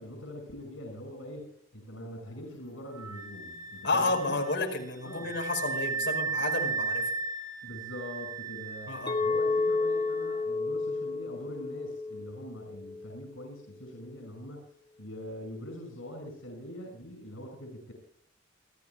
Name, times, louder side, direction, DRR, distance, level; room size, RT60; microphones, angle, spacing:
voice 1, 0.0-4.4 5.0-5.3 7.6-17.9, left 1 dB, 85° left, 2 dB, 5.9 m, -43 dB
Wind instrument woodwind instrument, 2.9-10.4, right 4 dB, 15° right, 4.8 m, -36 dB
voice 2, 3.8-7.1 8.9-9.2, left 2 dB, 55° left, 2 dB, 4.8 m, -31 dB
Chink clink, 9.1-13.3, left 3 dB, 20° left, 1.4 m, -31 dB
28.0 x 14.5 x 2.3 m, 0.64 s
head